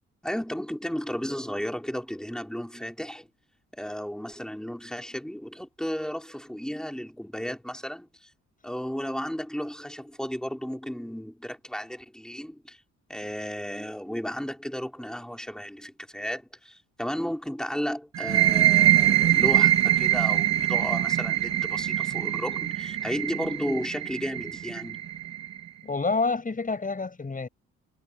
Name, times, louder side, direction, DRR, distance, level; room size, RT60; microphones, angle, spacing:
voice 1, 0.2-3.3 3.8-8.3 8.6-12.8 13.1-25.0, equal, ahead, 5.9 m, -34 dB
sound 1, 18.1-25.6, right 12 dB, 60° right, 3.2 m, -23 dB
voice 2, 25.8-27.5, left 3 dB, 25° left, 6.9 m, -28 dB
cardioid pair, 90°, 30 cm